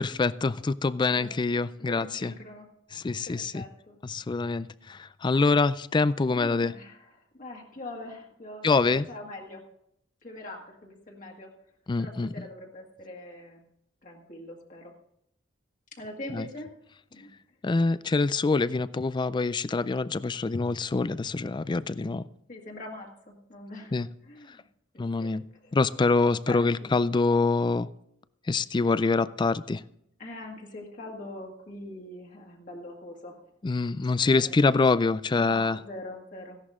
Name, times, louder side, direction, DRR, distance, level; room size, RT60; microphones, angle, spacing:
voice 1, 0.0-2.3 2.9-3.6 4.0-6.7 8.6-9.1 11.9-12.3 16.3-16.4 17.6-22.2 23.9-24.1 25.0-25.4 25.7-27.9 28.5-29.8 33.6-35.8, left 3 dB, 25° left, 17 dB, 0.3 m, -25 dB
voice 2, 1.1-1.4 1.8-2.7 3.1-4.0 4.3-4.7 6.3-9.7 10.2-11.5 12.0-13.6 14.0-14.9 15.9-16.7 17.1-17.3 21.6-22.1 22.5-23.9 24.2-24.6 24.9-25.8 26.5-27.0 30.2-33.5 34.0-34.6 35.3-36.6, left 1 dB, 45° left, 0 dB, 2.0 m, -43 dB
15.0 x 11.0 x 3.7 m, 0.76 s
head